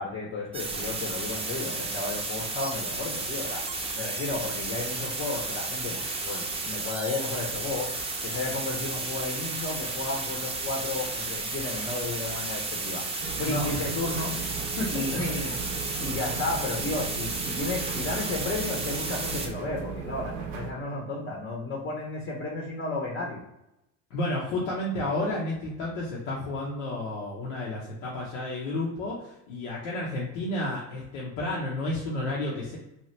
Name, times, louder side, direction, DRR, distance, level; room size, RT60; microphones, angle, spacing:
voice 1, 0.0-3.6 3.9-7.9 8.2-13.0 13.3-14.4 14.9-15.6 16.0-23.4, left 3 dB, 30° left, -1 dB, 0.7 m, -33 dB
sound 1, 0.5-19.5, right 3 dB, 15° right, 0.6 m, -33 dB
sound 2, 13.2-20.7, right 6 dB, 80° right, 0.6 m, -37 dB
voice 2, 14.8-15.2 24.1-32.8, left 1 dB, 80° left, -4 dB, 0.8 m, -31 dB
2.9 x 2.3 x 3.1 m, 0.87 s
supercardioid pair, 85°, 37 cm